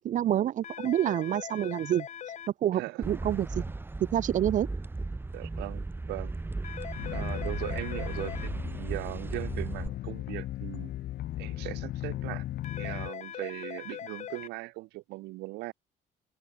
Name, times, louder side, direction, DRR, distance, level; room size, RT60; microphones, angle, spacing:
voice 1, 0.0-2.1 2.6-3.7 4.1-4.7, right 11 dB, 50° right, 0.5 m, -27 dB
sound 1, 0.6-2.5 6.6-8.5 12.6-14.5, left 9 dB, 45° left, 1.1 m, -41 dB
voice 2, 2.7-3.0 5.3-6.3 7.1-10.9 11.4-12.5 12.8-15.7, right 21 dB, 90° right, 1.0 m, -39 dB
sound 2, 3.0-9.9, right 2 dB, 10° right, 1.0 m, -36 dB
sound 3, 7.0-13.1, left 14 dB, 70° left, 3.0 m, -37 dB
cardioid pair, 110°, 17 cm